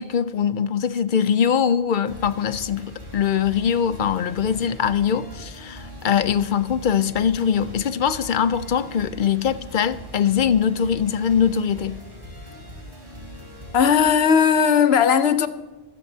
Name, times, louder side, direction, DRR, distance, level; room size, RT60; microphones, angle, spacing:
voice 1, 0.0-12.0, left 8 dB, 55° left, 0.7 m, -22 dB
sound 1, 2.0-14.1, equal, 55° right, 3.5 m, -41 dB
voice 2, 13.7-15.5, left 7 dB, 80° left, 1.0 m, -17 dB
24.0 x 12.5 x 2.8 m
omnidirectional pair, 1.0 m